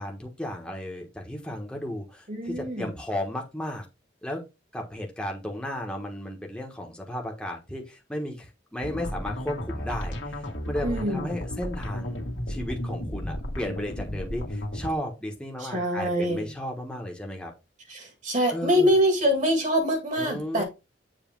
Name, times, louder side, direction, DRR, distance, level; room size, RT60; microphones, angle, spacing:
voice 1, 0.0-3.8 4.2-4.4 4.7-17.5 18.5-18.9 20.2-20.6, left 1 dB, 5° left, 1.3 m, -34 dB
voice 2, 2.3-2.9 10.8-11.3 15.6-16.5 17.9-20.6, equal, 45° right, 2.1 m, -24 dB
sound 1, 8.8-14.9, left 1 dB, 80° left, 1.6 m, -33 dB
7.3 x 3.3 x 4.5 m
head